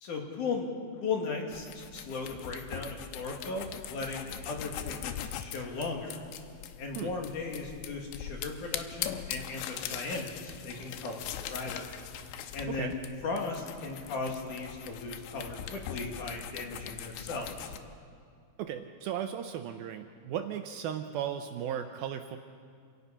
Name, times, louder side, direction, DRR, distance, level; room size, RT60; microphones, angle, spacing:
voice 1, 0.0-0.7 1.0-6.2 6.8-11.9 12.5-17.7, left 4 dB, 55° left, 1 dB, 2.9 m, -37 dB
sound 1, 1.5-17.8, left 10 dB, 85° left, 2.9 m, -41 dB
voice 2, 18.6-22.4, right 9 dB, 80° right, 7 dB, 2.3 m, -36 dB
28.0 x 17.5 x 5.6 m, 2.2 s
omnidirectional pair, 4.8 m